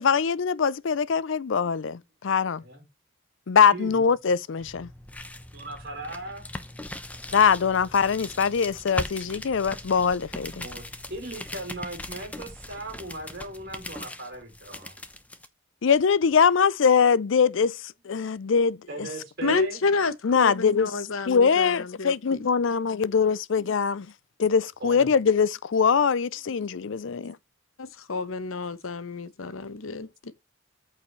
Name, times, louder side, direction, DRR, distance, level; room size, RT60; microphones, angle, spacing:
voice 1, 0.0-2.6 3.5-4.9 7.3-10.7 15.8-19.1 20.2-20.9 21.3-24.1 24.4-27.4, left 6 dB, 65° left, 0.4 m, -22 dB
voice 2, 3.7-4.0 5.5-6.5 10.6-10.8 11.1-15.0 18.9-19.8 24.8-25.1, right 1 dB, 45° right, 3.2 m, -38 dB
sound 1, 4.6-15.5, left 1 dB, 5° left, 0.7 m, -39 dB
voice 3, 19.4-22.5 27.8-30.3, left 3 dB, 85° left, 1.0 m, -30 dB
14.0 x 4.7 x 3.1 m
head